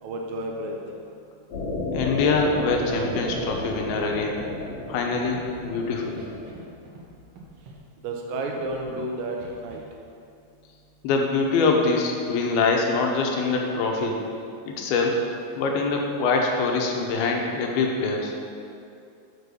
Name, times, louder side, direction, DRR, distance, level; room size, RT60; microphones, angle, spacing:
voice 1, 0.0-0.8 8.0-9.8, right 1 dB, 75° right, 1 dB, 2.4 m, -31 dB
sound 1, 1.5-6.5, left 2 dB, 70° left, 3.1 m, -32 dB
voice 2, 1.9-4.4 4.9-6.3 11.0-14.2 14.7-15.2 15.6-18.3, left 3 dB, 90° left, 1 dB, 2.8 m, -24 dB
Scratching (performance technique), 3.6-3.8 4.1-4.5 5.2-5.8 6.2-6.6 6.9-7.1 7.3-7.8 8.5-9.0 9.4-9.8, right 3 dB, 60° right, 1.7 m, -45 dB
6.5 x 5.8 x 6.8 m, 2.5 s
omnidirectional pair, 4.2 m